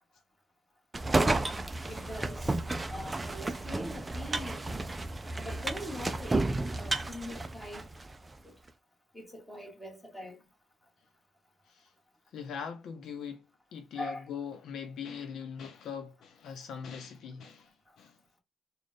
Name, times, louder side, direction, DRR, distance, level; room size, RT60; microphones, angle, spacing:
sound 1, 0.9-8.1, right 2 dB, 20° right, 0.4 m, -32 dB
voice 1, 1.9-2.6 2.9-4.8 5.4-6.4 6.7-7.8 8.4-8.5 9.1-10.4 14.0-14.2, left 1 dB, 5° left, 1.8 m, -42 dB
voice 2, 12.3-13.4 13.7-18.2, left 7 dB, 70° left, 0.7 m, -41 dB
3.9 x 2.4 x 3.4 m
cardioid pair, 90°, 0 cm